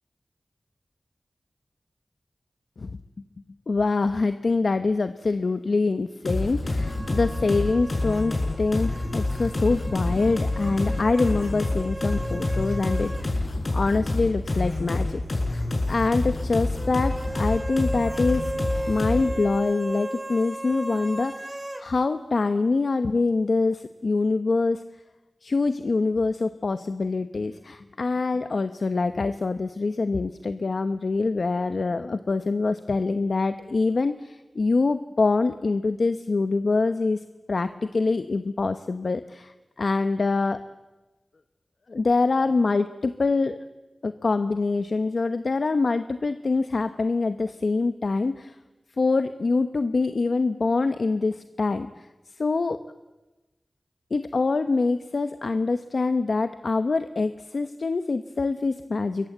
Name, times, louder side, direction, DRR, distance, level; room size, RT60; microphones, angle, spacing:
voice 1, 3.7-15.2 15.5-18.5 18.9-24.8 25.4-37.2 37.5-40.6 41.9-43.6 44.0-48.6 49.0-52.1 52.4-52.8 54.1-59.3, left 3 dB, 70° left, 9 dB, 1.0 m, -25 dB
sound 1, 6.3-19.4, left 2 dB, 45° left, 6.5 m, -27 dB
sound 2, 6.8-13.3 13.6-13.7 16.8-21.9, right 1 dB, 20° right, 1.9 m, -36 dB
28.5 x 22.5 x 8.1 m, 1.1 s
wide cardioid pair, 90°, 0 cm